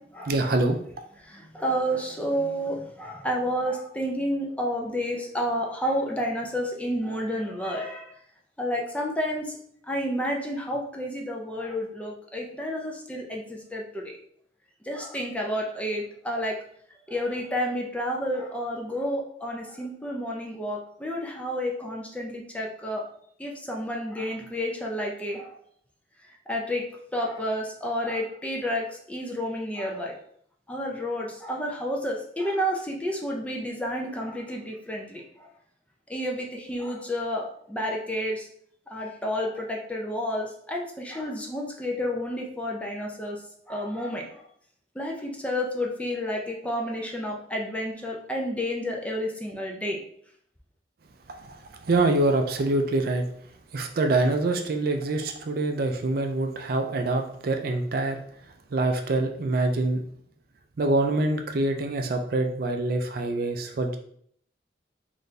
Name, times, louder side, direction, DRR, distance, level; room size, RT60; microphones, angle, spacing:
voice 1, 0.3-0.8 51.5-51.6 51.9-53.2 53.7-58.2 58.7-60.0 60.8-64.0, right 2 dB, 55° right, 5 dB, 0.4 m, -25 dB
voice 2, 1.3-8.1 8.6-9.6 9.9-14.0 14.9-16.5 17.1-23.0 23.4-25.6 26.5-26.8 27.1-30.1 30.7-35.5 36.1-38.5 38.9-43.4 43.7-44.4 45.0-50.0, equal, 10° left, -1 dB, 0.6 m, -30 dB
4.1 x 2.6 x 3.3 m, 0.65 s
head